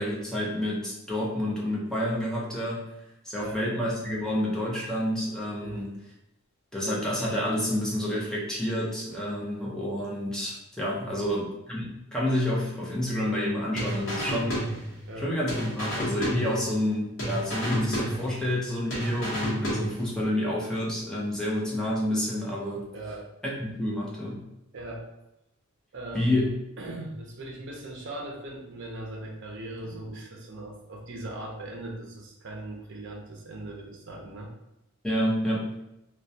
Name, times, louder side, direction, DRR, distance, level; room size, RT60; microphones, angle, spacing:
voice 1, 0.0-2.8 3.2-5.9 6.7-14.8 15.2-22.9 23.4-24.4 26.1-26.5 35.0-35.7, left 1 dB, 5° left, -6 dB, 0.5 m, -29 dB
sound 1, 13.8-15.2 15.5-16.9 17.2-18.6 18.9-20.2, equal, 60° left, 0.8 m, -31 dB
voice 2, 22.9-23.3 24.7-25.0 25.9-34.5, right 1 dB, 55° right, 0 dB, 0.5 m, -39 dB
2.2 x 2.2 x 2.6 m, 0.87 s
head